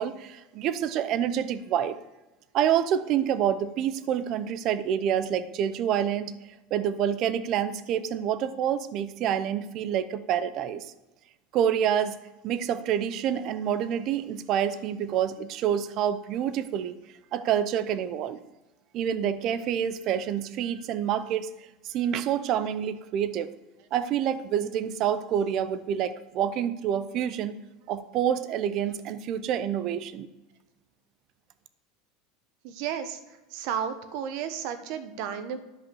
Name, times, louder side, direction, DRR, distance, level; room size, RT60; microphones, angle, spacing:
voice 1, 0.0-2.0 2.5-6.3 6.7-10.9 11.5-12.2 12.4-16.9 17.3-18.4 18.9-21.5 21.9-23.5 23.9-27.5 27.9-30.3, right 9 dB, 40° right, 14 dB, 0.6 m, -27 dB
voice 2, 32.6-33.2 33.5-35.6, right 8 dB, 55° right, 10 dB, 1.2 m, -32 dB
10.5 x 5.6 x 7.0 m, 1.0 s
supercardioid pair, 155°, 0 cm